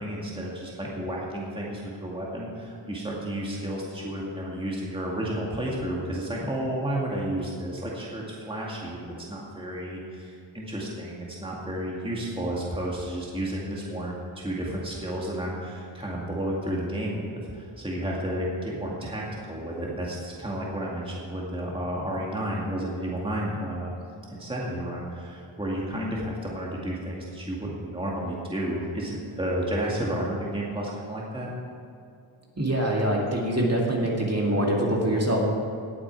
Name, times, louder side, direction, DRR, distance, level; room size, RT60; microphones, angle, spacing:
voice 1, 0.0-23.9 24.3-31.5, right 1 dB, 10° right, -4 dB, 2.0 m, -32 dB
voice 2, 32.6-35.5, right 1 dB, 30° right, -2 dB, 2.4 m, -24 dB
18.0 x 8.5 x 4.6 m, 2.5 s
wide cardioid pair, 90°, 49 cm